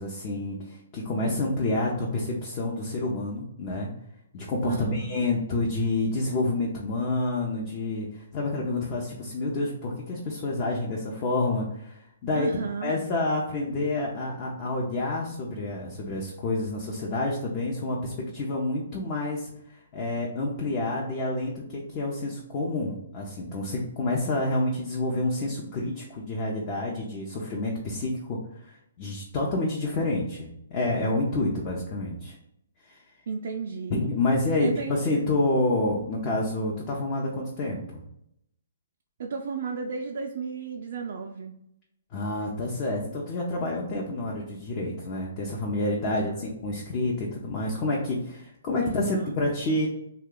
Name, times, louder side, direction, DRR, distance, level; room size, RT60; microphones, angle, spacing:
voice 1, 0.0-3.9 4.3-12.5 12.8-32.4 32.8-33.0 33.9-38.0 42.1-49.9, left 2 dB, 35° left, -3 dB, 0.6 m, -28 dB
voice 2, 4.6-5.2 12.3-13.0 31.5-31.6 33.3-34.1 34.6-35.0 39.2-41.6 46.0-46.3 48.8-49.3, right 5 dB, 60° right, 2 dB, 0.4 m, -34 dB
2.8 x 2.2 x 3.7 m, 0.78 s
hypercardioid pair, 140°, 0 cm